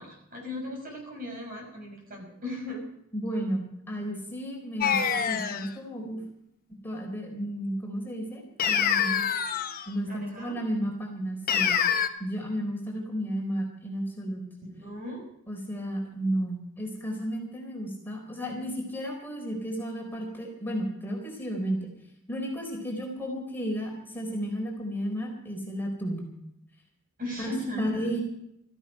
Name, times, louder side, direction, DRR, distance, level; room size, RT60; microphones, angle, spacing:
voice 1, 0.0-2.8 10.1-10.6 14.8-15.3 27.2-28.1, left 1 dB, 45° right, 1 dB, 6.2 m, -37 dB
voice 2, 3.1-6.2 6.8-9.2 9.9-11.8 12.2-14.4 15.5-21.9 22.3-26.3 27.4-27.5 27.8-28.2, equal, 10° left, -1 dB, 3.9 m, -33 dB
sound 1, 4.8-5.7 8.6-9.9 11.5-12.1, left 7 dB, 45° left, 1.1 m, -25 dB
16.5 x 14.5 x 5.4 m, 0.77 s
head